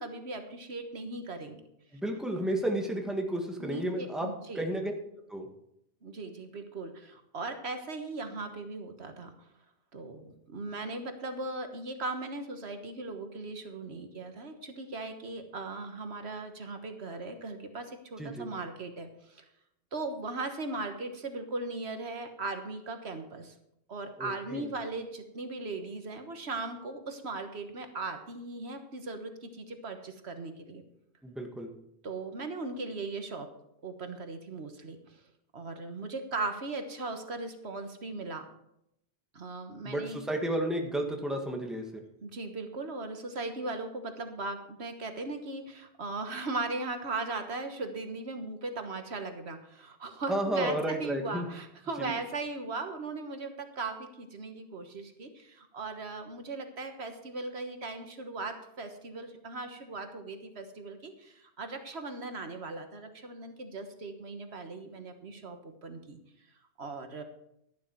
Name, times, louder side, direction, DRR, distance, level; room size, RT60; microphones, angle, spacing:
voice 1, 0.0-1.6 3.6-4.7 6.0-9.3 9.9-19.4 19.9-23.5 23.9-30.8 32.0-33.5 33.8-35.2 35.5-38.5 39.3-40.2 42.2-66.2 66.8-67.2, right 3 dB, 75° right, 6 dB, 1.6 m, -38 dB
voice 2, 1.9-4.3 4.5-4.9 5.3-5.5 18.2-18.5 24.2-24.7 31.2-31.7 39.8-42.0 50.3-51.5 52.0-52.1, right 1 dB, ahead, 2 dB, 1.6 m, -32 dB
12.0 x 11.0 x 4.6 m, 0.79 s
omnidirectional pair, 1.1 m